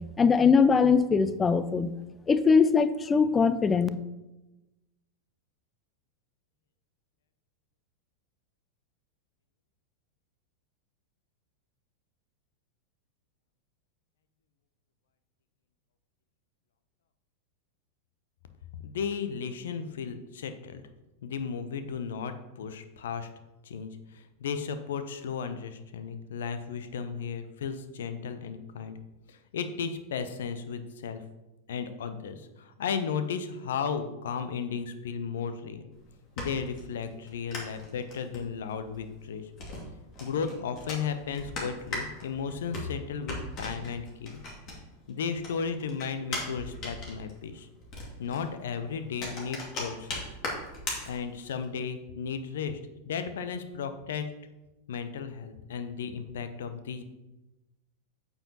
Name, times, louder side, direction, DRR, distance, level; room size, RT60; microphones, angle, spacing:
voice 1, 0.2-1.9 2.3-3.9, left 5 dB, 15° left, 13 dB, 0.4 m, -21 dB
voice 2, 18.8-20.8 21.2-23.3 23.6-29.0 29.3-31.2 31.7-35.9 36.4-39.5 40.2-44.4 45.1-47.7 48.2-50.3 51.1-52.8 53.1-54.3 54.9-57.0, left 6 dB, 60° left, 10 dB, 0.7 m, -35 dB
sound 1, 35.9-45.1 45.4-51.7, left 2 dB, 35° left, 2.2 m, -39 dB
8.7 x 7.0 x 2.9 m, 1.0 s
figure-of-eight pair, 90°, 0 cm